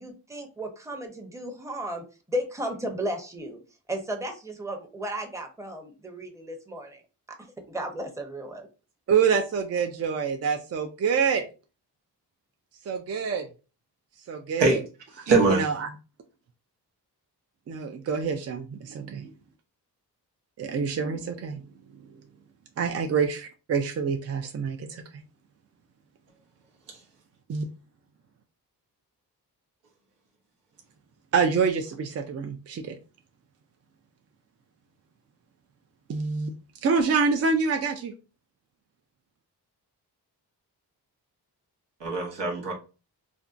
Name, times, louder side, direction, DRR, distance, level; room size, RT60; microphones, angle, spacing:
voice 1, 0.0-3.6 3.9-7.0 7.7-8.7, right 1 dB, 5° right, 4 dB, 0.6 m, -34 dB
voice 2, 9.1-11.4 12.9-13.5 14.3-14.8 15.5-15.9 17.7-19.3 20.6-21.6 22.8-25.2 27.5-27.7 31.3-33.0 36.1-36.5 36.8-38.1, right 5 dB, 40° right, 6 dB, 0.4 m, -26 dB
voice 3, 15.2-15.7 42.0-42.7, right 3 dB, 85° right, 0 dB, 0.8 m, -22 dB
2.5 x 2.1 x 2.4 m, 0.33 s
cardioid pair, 45°, 41 cm